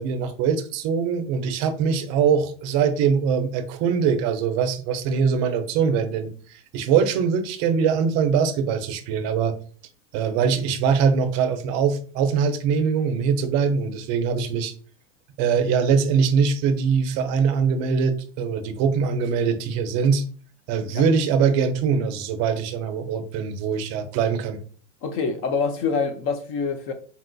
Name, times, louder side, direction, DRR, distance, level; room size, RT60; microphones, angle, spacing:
voice 1, 0.0-9.6 10.1-14.7 15.4-20.2 20.7-24.6, right 6 dB, 45° right, 0.5 m, -22 dB
voice 2, 25.0-26.9, left 5 dB, 35° left, 0.4 m, -25 dB
3.9 x 2.4 x 2.2 m
hypercardioid pair, 110°, 39 cm